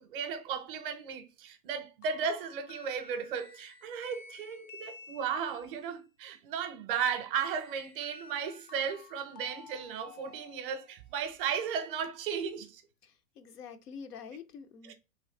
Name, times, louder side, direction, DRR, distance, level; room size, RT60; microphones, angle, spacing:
voice 1, 0.0-12.8 14.8-14.9, right 7 dB, 35° right, 0.6 m, -35 dB
sound 1, 2.0-5.8 7.4-11.1, left 5 dB, 30° left, 0.4 m, -52 dB
voice 2, 13.0-14.9, left 6 dB, 80° left, 0.7 m, -47 dB
3.1 x 3.1 x 2.9 m
figure-of-eight pair, 105°, 46 cm